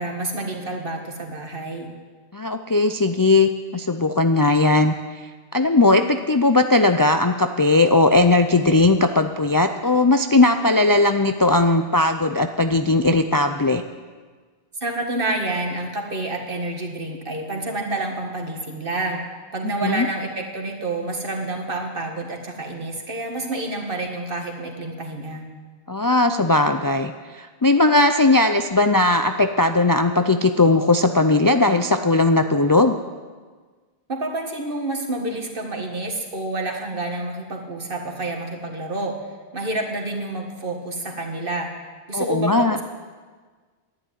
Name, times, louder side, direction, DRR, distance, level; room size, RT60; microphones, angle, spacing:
voice 1, 0.0-1.9 14.8-19.2 19.5-25.4 34.1-39.2 39.5-41.7 42.1-42.8, right 2 dB, 60° right, 2 dB, 2.0 m, -28 dB
voice 2, 2.3-4.9 5.5-13.8 19.8-20.1 25.9-33.0 42.1-42.8, left 2 dB, 30° left, 7 dB, 0.4 m, -18 dB
11.5 x 10.0 x 9.3 m, 1.4 s
omnidirectional pair, 1.0 m